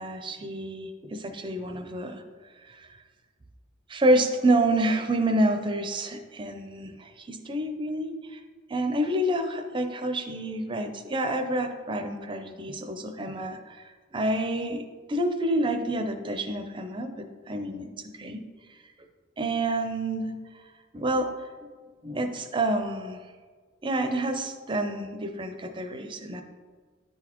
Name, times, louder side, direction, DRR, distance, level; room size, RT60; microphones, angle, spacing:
voice 1, 0.0-2.2 2.7-2.9 3.9-8.4 8.7-13.8 14.1-18.4 19.4-20.4 20.9-21.3 21.6-21.7 22.0-23.2 23.8-26.4, right 1 dB, 25° right, 6 dB, 0.5 m, -28 dB
10.0 x 4.0 x 3.0 m, 1.5 s
head